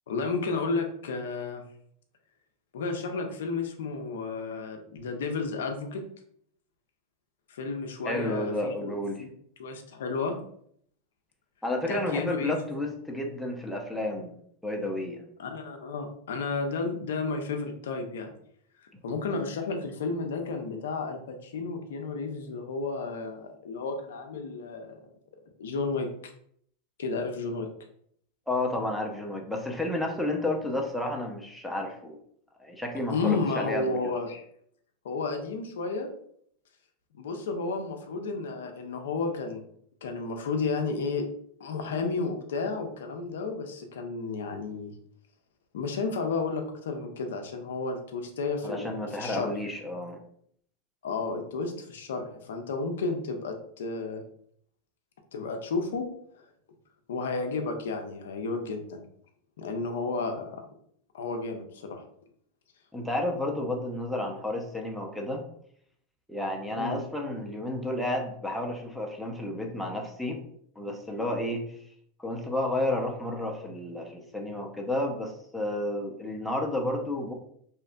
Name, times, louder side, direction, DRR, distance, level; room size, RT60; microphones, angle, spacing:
voice 1, 0.1-1.6 2.7-6.0 7.5-8.9 9.2-9.3 9.6-10.4 11.9-12.6 15.4-18.3 19.0-25.0 25.6-26.3 27.0-27.7 33.1-34.4 35.0-36.1 37.1-39.6 40.0-41.2 41.6-44.9 45.7-49.5 51.0-54.2 55.3-56.1 56.4-56.5 57.1-59.0 59.6-60.6 61.1-62.0 66.8-67.0, left 4 dB, 75° left, 4 dB, 0.4 m, -32 dB
voice 2, 8.0-9.2 11.6-14.3 14.6-15.2 28.5-32.2 32.6-34.1 48.6-50.2 62.9-65.4 66.3-70.4 70.8-71.8 72.2-77.3, left 1 dB, ahead, 0 dB, 0.5 m, -31 dB
2.8 x 2.3 x 2.2 m, 0.66 s
hypercardioid pair, 100°, 0 cm